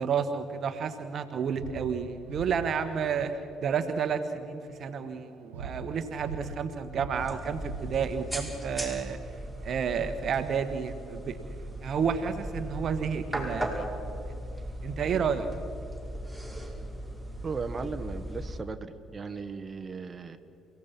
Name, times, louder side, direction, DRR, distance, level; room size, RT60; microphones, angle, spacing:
voice 1, 0.0-3.4 3.6-9.2 9.6-11.4 11.8-13.8 14.8-15.5, right 6 dB, 55° right, 9 dB, 1.3 m, -30 dB
sound 1, 1.4-11.8, right 4 dB, 80° right, 1.6 m, -45 dB
sound 2, 7.1-18.6, right 1 dB, 5° left, 5.6 m, -38 dB
voice 2, 17.4-20.4, right 4 dB, 30° right, 7 dB, 1.4 m, -37 dB
29.5 x 17.0 x 5.9 m, 2.8 s
hypercardioid pair, 50°, 0 cm